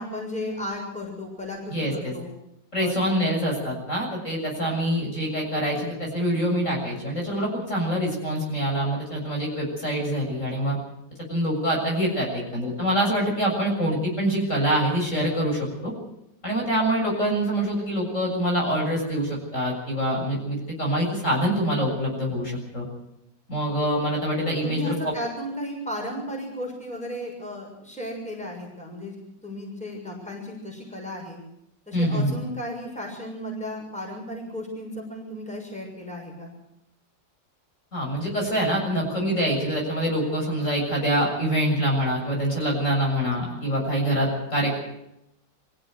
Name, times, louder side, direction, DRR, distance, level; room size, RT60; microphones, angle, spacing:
voice 1, 0.0-2.3 2.8-2.9 24.6-29.1 29.4-31.4 31.9-36.5, equal, 5° left, -1 dB, 6.7 m, -34 dB
voice 2, 1.7-2.1 2.7-10.8 11.3-15.9 16.4-22.9 23.5-25.1 31.9-32.4 37.9-44.8, equal, 40° left, -2 dB, 7.6 m, -25 dB
24.5 x 16.0 x 8.1 m, 0.83 s
omnidirectional pair, 2.0 m